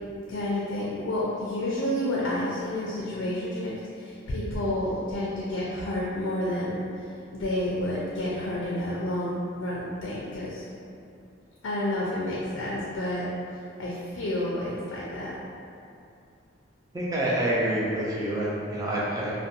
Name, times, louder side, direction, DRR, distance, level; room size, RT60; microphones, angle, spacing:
voice 1, 0.3-6.8 7.3-10.7 11.6-13.3 13.8-15.4, left 1 dB, 75° left, -5 dB, 0.4 m, -30 dB
voice 2, 16.9-19.3, right 1 dB, 20° right, -7 dB, 0.3 m, -27 dB
2.4 x 2.1 x 2.7 m, 2.5 s
head